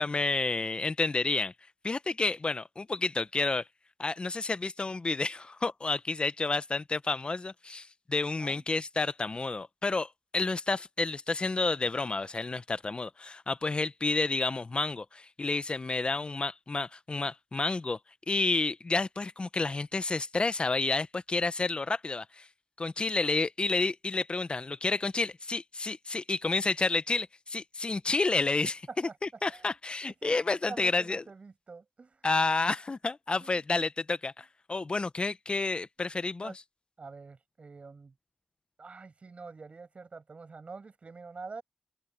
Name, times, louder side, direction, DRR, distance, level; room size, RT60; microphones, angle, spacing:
voice 1, 0.0-1.5 1.8-3.6 4.0-18.0 18.3-22.5 22.8-31.2 32.2-36.5, left 3 dB, 45° left, 0.8 m, -30 dB
voice 2, 30.0-32.3 33.4-33.5 36.4-36.6 37.0-38.1 38.8-41.6, right 4 dB, 60° right, 6.8 m, -46 dB
open air
cardioid pair, 55°, 2 cm